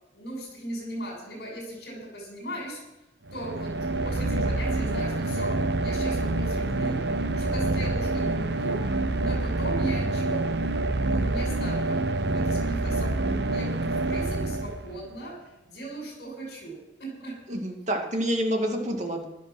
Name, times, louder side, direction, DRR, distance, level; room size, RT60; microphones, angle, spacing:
voice 1, 0.1-2.8 3.3-7.0 7.4-10.4 11.0-12.0 12.3-15.4 15.6-17.3, right 1 dB, 65° left, 0 dB, 6.6 m, -38 dB
sound 1, 3.3-15.1, right 2 dB, 60° right, 0.8 m, -27 dB
voice 2, 17.5-19.2, equal, 40° right, 2 dB, 2.4 m, -28 dB
15.5 x 12.5 x 6.3 m, 0.96 s
head